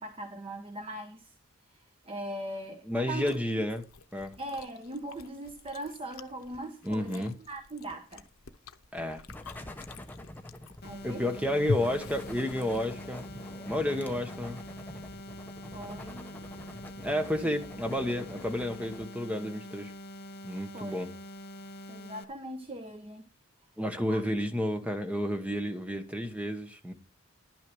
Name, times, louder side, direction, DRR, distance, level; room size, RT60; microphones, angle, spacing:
voice 1, 0.0-1.3 1.7-3.4 4.4-8.2 10.8-11.5 15.7-16.3 20.7-21.0 21.9-23.3 24.1-24.2, right 1 dB, 25° right, 1.0 m, -40 dB
voice 2, 2.9-3.8 4.1-4.4 6.8-7.3 8.9-9.2 11.0-13.3 13.7-14.6 17.0-19.9 20.4-21.1 23.8-26.9, left 1 dB, 5° right, 1.2 m, -31 dB
Chewing mastication, 3.0-13.2, left 3 dB, 90° left, 0.8 m, -43 dB
sound 1, 9.3-19.0, left 1 dB, 10° left, 0.9 m, -46 dB
sound 2, 10.8-22.2, equal, 50° left, 0.9 m, -45 dB
11.0 x 6.1 x 6.3 m
head